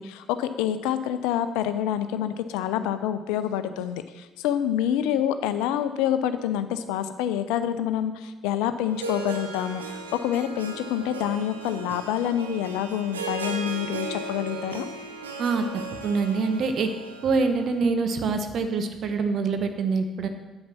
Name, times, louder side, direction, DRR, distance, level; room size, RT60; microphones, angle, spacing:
voice 1, 0.0-14.9, left 10 dB, 70° left, 11 dB, 0.6 m, -27 dB
Harp, 8.9-17.9, right 3 dB, 90° right, 0.7 m, -36 dB
voice 2, 16.0-16.9 17.2-20.3, right 4 dB, 55° right, 7 dB, 1.1 m, -25 dB
8.5 x 8.0 x 6.0 m, 1.2 s
figure-of-eight pair, 45°, 0 cm